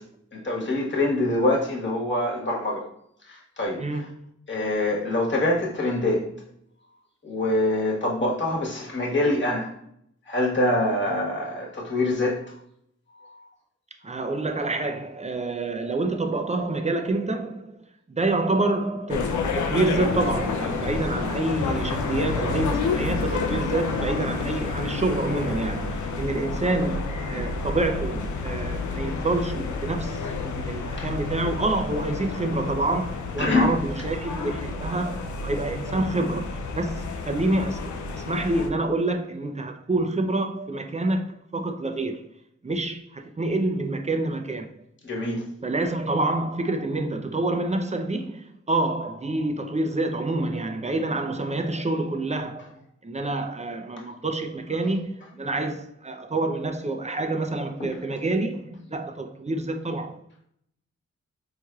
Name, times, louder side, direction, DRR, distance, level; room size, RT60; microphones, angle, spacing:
voice 1, 0.3-2.9 3.3-3.8 4.5-6.3 7.2-9.7 10.3-12.4 31.0-31.1 33.4-33.7 45.0-45.4 57.8-57.9, left 2 dB, 40° left, 1.3 m, -25 dB
voice 2, 3.8-4.2 14.0-42.2 42.6-44.7 45.6-60.2, right 2 dB, 25° right, 0.5 m, -27 dB
sound 1, 19.1-38.7, left 4 dB, 75° left, 0.5 m, -30 dB
4.2 x 3.1 x 2.3 m
cardioid pair, 45°, 30 cm